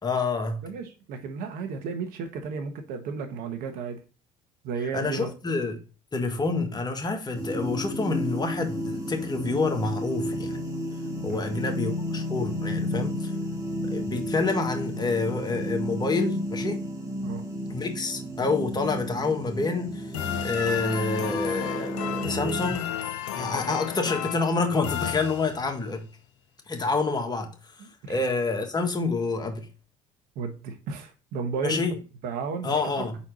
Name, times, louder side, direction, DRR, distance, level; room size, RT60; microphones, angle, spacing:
voice 1, 0.0-0.7 4.9-5.8 6.1-10.6 11.2-13.3 13.9-16.8 17.7-20.2 20.4-23.0 23.3-26.1 26.7-27.5 28.1-29.7 31.6-32.0 32.6-33.2, left 3 dB, 25° left, 1.5 m, -28 dB
voice 2, 0.6-4.0 4.6-5.3 11.2-11.4 17.2-17.4 28.0-28.2 30.3-31.8 32.2-33.0, right 5 dB, 65° right, 1.3 m, -33 dB
sound 1, 7.3-22.7, equal, 20° right, 2.1 m, -32 dB
sound 2, 20.1-25.9, left 10 dB, 90° left, 0.6 m, -33 dB
4.4 x 4.3 x 5.3 m
hypercardioid pair, 70°, 16 cm